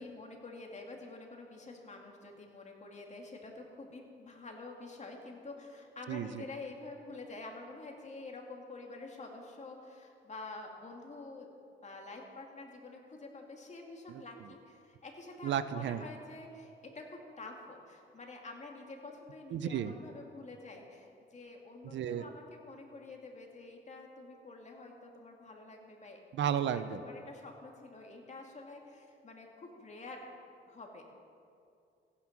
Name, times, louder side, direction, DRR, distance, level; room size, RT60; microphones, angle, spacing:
voice 1, 0.0-11.5 11.8-26.2 26.7-30.3 30.7-31.0, left 3 dB, 35° left, 1 dB, 2.4 m, -48 dB
voice 2, 6.1-6.4 14.1-14.2 15.4-16.0 19.5-19.9 21.8-22.3 26.3-27.0, right 9 dB, 65° right, 13 dB, 0.6 m, -33 dB
15.5 x 9.8 x 6.0 m, 2.5 s
cardioid pair, 90°, 20 cm